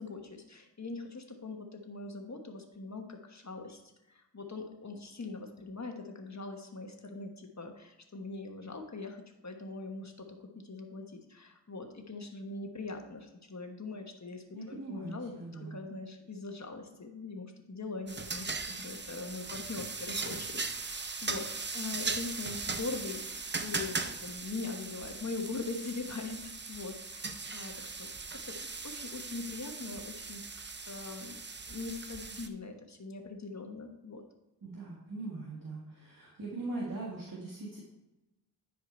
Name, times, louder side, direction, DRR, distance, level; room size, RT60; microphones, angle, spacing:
voice 1, 0.0-3.8 4.1-30.4 30.9-31.4 31.7-34.2, left 3 dB, 40° left, 3 dB, 1.3 m, -42 dB
voice 2, 14.5-15.8 34.6-37.8, right 2 dB, 50° right, -3 dB, 1.7 m, -41 dB
sound 1, 18.1-32.5, right 4 dB, 25° right, 0.5 m, -39 dB
10.0 x 5.0 x 4.4 m, 0.99 s
wide cardioid pair, 60°, 43 cm